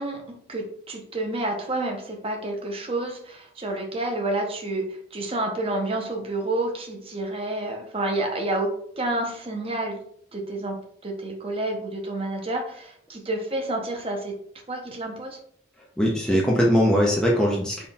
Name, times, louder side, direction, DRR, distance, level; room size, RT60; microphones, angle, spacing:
voice 1, 0.0-10.0 10.3-14.3 14.7-15.4 16.3-16.4, right 2 dB, 30° right, 2 dB, 0.8 m, -29 dB
voice 2, 16.0-17.9, equal, 5° left, -4 dB, 0.6 m, -21 dB
4.1 x 3.6 x 2.3 m, 0.63 s
head